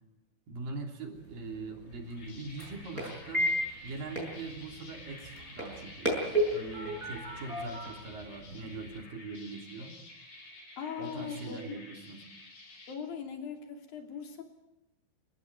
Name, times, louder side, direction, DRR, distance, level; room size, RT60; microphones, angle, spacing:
voice 1, 0.5-3.5 3.8-9.9 11.0-12.2, right 3 dB, 65° right, 2 dB, 4.9 m, -42 dB
sound 1, 1.1-9.0, equal, 20° right, 6.7 m, -35 dB
sound 2, 1.9-13.0, left 2 dB, 90° left, 7.9 m, -51 dB
voice 2, 10.8-11.8 12.9-14.4, left 7 dB, 70° left, 3 dB, 4.7 m, -40 dB
28.5 x 15.0 x 9.4 m, 0.96 s
omnidirectional pair, 4.3 m